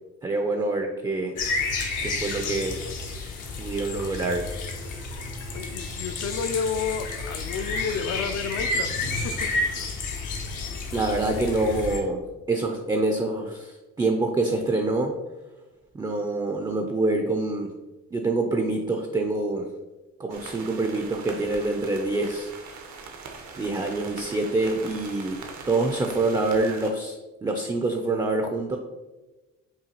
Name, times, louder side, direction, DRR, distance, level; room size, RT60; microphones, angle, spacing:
voice 1, 0.2-1.4 2.0-2.8 3.6-4.5 10.9-12.2 12.5-15.1 15.9-17.7 18.1-19.7 20.2-22.5 23.6-25.4 25.7-28.8, right 2 dB, 15° right, 3 dB, 0.4 m, -26 dB
sound 1, 1.4-12.0, left 3 dB, 85° left, 0.8 m, -31 dB
voice 2, 5.5-8.9 9.2-9.5, left 6 dB, 60° left, 10 dB, 0.4 m, -31 dB
sound 2, 20.3-26.9, right 5 dB, 70° right, 0.7 m, -41 dB
5.5 x 2.3 x 2.9 m, 1.1 s
cardioid pair, 90°, 30 cm